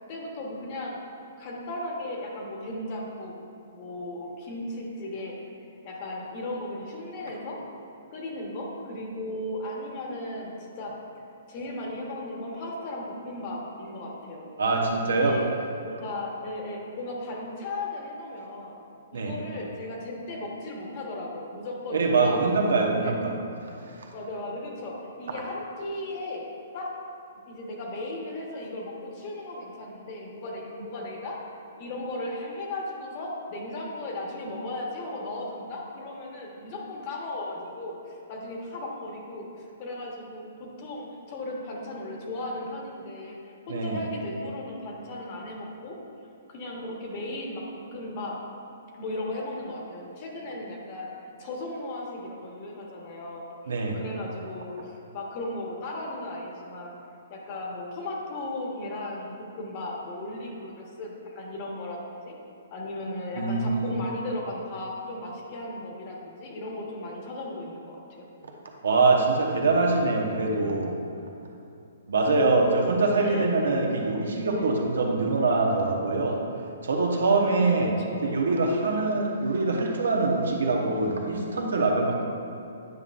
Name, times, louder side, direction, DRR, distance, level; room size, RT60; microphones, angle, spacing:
voice 1, 0.1-1.0 1.4-3.3 3.7-5.4 5.8-7.6 8.1-10.9 11.5-14.5 15.1-15.5 15.8-18.8 19.1-22.4 23.0-23.1 24.1-26.5 26.7-26.9 27.5-31.4 31.8-46.0 46.5-48.4 48.9-51.1 51.4-57.0 57.3-62.3 62.7-68.2 72.3-72.5 73.2-74.2 74.5-74.9 77.5-78.3, left 1 dB, 40° left, -1 dB, 1.2 m, -36 dB
voice 2, 14.6-15.4 19.1-19.4 21.9-23.3 43.7-44.0 53.7-54.0 63.4-63.9 68.8-71.0 72.1-76.4 76.8-77.9 78.2-82.2, right 3 dB, 85° right, 1 dB, 1.0 m, -24 dB
9.4 x 5.4 x 2.5 m, 2.7 s
hypercardioid pair, 155°, 0 cm